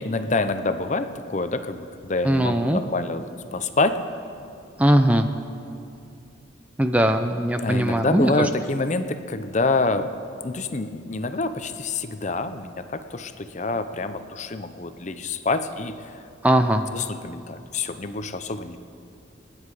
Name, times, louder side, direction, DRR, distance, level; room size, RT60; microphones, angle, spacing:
voice 1, 0.0-4.0 7.6-10.1 10.4-16.0 16.9-18.8, left 3 dB, 35° left, 10 dB, 0.6 m, -27 dB
voice 2, 2.2-2.8 4.8-5.3 6.8-8.3 16.4-16.8, right 1 dB, 5° right, 7 dB, 0.5 m, -20 dB
27.0 x 9.7 x 4.8 m, 2.6 s
head